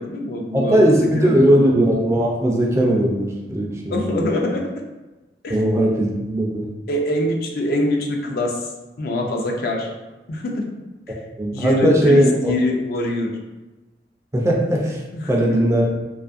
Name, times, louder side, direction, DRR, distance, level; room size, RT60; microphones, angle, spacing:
voice 1, 0.0-0.8 1.2-1.7 3.9-4.7 5.4-5.6 6.9-8.6 9.0-9.9 10.3-10.6 11.5-13.3 15.1-15.6, left 1 dB, 55° left, 1 dB, 0.4 m, -24 dB
voice 2, 0.5-4.3 5.5-6.7 11.4-12.5 14.3-15.0 15.3-16.0, right 1 dB, 15° right, -1 dB, 0.3 m, -18 dB
2.5 x 2.4 x 2.4 m, 1.1 s
head